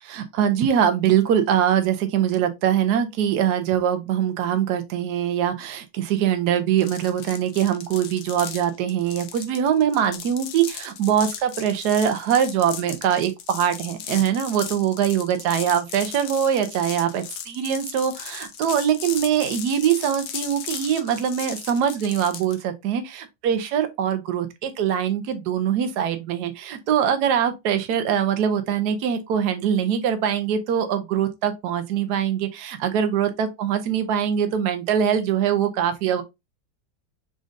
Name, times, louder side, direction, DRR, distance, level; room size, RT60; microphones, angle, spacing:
voice 1, 0.0-36.2, right 9 dB, 70° right, 1.2 m, -23 dB
sound 1, 6.8-22.6, left 9 dB, 75° left, 1.3 m, -37 dB
5.1 x 3.8 x 2.5 m
omnidirectional pair, 1.9 m